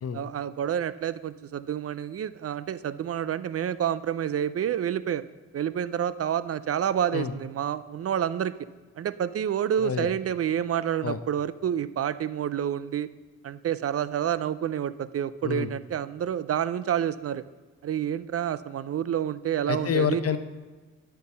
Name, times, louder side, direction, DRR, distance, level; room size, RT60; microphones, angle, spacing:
voice 1, 0.1-5.2 5.5-8.6 9.0-13.1 13.4-17.4 17.8-20.2, right 9 dB, 50° right, 15 dB, 0.4 m, -28 dB
voice 2, 9.8-10.1 11.0-11.2 15.4-15.7 19.7-20.4, left 7 dB, 50° left, 10 dB, 0.8 m, -28 dB
12.0 x 4.7 x 5.5 m, 1.3 s
cardioid pair, 60°, 30 cm